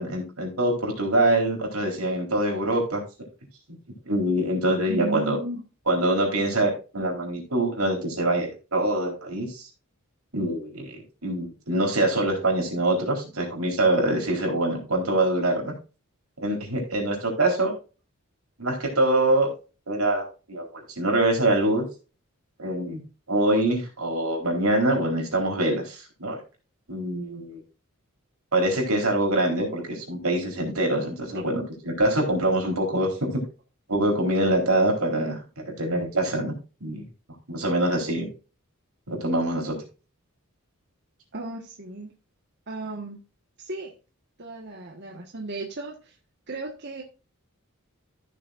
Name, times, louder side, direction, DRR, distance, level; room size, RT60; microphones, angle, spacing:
voice 1, 0.0-3.0 3.7-3.8 4.1-5.4 5.9-9.7 10.3-15.7 16.4-17.7 18.6-19.5 19.9-21.9 22.6-23.0 23.3-26.4 26.9-27.6 28.5-33.3 33.9-36.5 36.8-37.0 37.5-38.3 39.1-39.8, right 1 dB, 85° right, 1 dB, 3.8 m, -24 dB
voice 2, 4.9-5.6 41.3-42.1 42.7-43.2 43.6-43.9 44.4-46.2 46.5-47.0, right 2 dB, 50° right, 0 dB, 1.4 m, -35 dB
14.5 x 6.4 x 2.5 m, 0.33 s
head